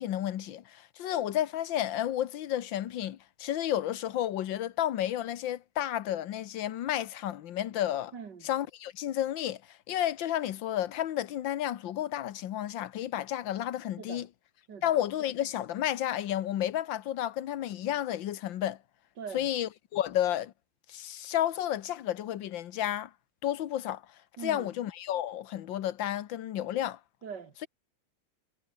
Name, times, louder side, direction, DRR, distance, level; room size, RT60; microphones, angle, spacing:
voice 1, 0.0-8.1 8.4-14.3 14.8-18.8 19.3-20.5 20.9-23.1 23.4-24.0 24.4-27.0, left 11 dB, 75° left, 1.7 m, -31 dB
voice 2, 8.1-8.5 14.0-14.3 14.7-14.9 19.2-19.5 24.4-24.7 27.2-27.7, right 6 dB, 60° right, 2.8 m, -42 dB
omnidirectional pair, 2.1 m